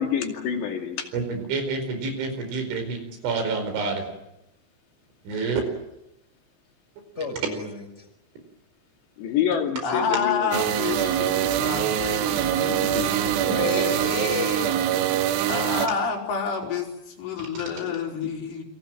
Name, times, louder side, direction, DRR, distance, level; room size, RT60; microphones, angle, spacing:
voice 1, 0.0-1.1 9.2-10.6 12.7-13.1 17.9-18.0 18.2-18.3, left 8 dB, 65° left, 3 dB, 4.6 m, -27 dB
voice 2, 1.1-4.1 5.3-5.6, right 4 dB, 75° right, 6 dB, 7.1 m, -28 dB
voice 3, 7.2-7.8 13.0-15.1, left 3 dB, 15° left, 4 dB, 5.0 m, -31 dB
voice 4, 9.8-13.5 15.5-16.9 17.2-18.6, left 6 dB, 85° left, -1 dB, 7.4 m, -29 dB
sound 1, 10.5-15.9, right 11 dB, 90° right, 3.9 m, -24 dB
28.5 x 23.5 x 7.6 m, 0.87 s
omnidirectional pair, 5.5 m